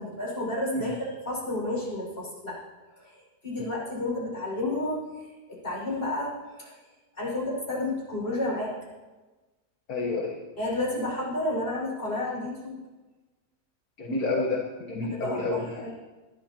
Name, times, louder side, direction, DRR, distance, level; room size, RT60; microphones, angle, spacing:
voice 1, 0.0-2.6 3.0-6.8 7.2-8.7 10.6-12.8 15.1-15.9, left 1 dB, 40° left, -5 dB, 5.8 m, -31 dB
voice 2, 9.9-10.4 14.0-15.9, left 3 dB, 65° left, -1 dB, 1.8 m, -29 dB
20.0 x 12.5 x 2.9 m, 1.2 s
omnidirectional pair, 1.7 m